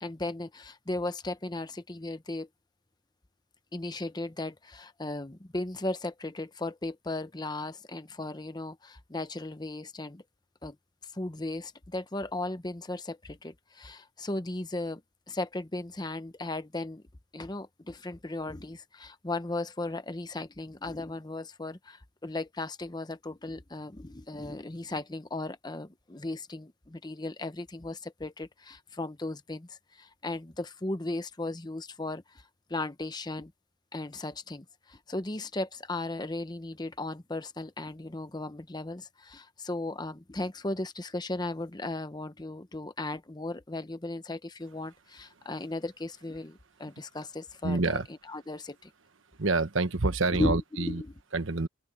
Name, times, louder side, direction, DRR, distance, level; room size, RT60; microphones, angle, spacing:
voice 1, 0.0-2.5 3.7-10.2 10.6-10.8 11.0-15.0 15.3-17.0 17.3-33.5 33.9-48.0 48.3-48.9 50.3-51.1, left 2 dB, 20° left, 0.8 m, -36 dB
voice 2, 47.6-48.1 49.4-51.0 51.3-51.7, right 3 dB, 80° right, 1.2 m, -27 dB
open air
head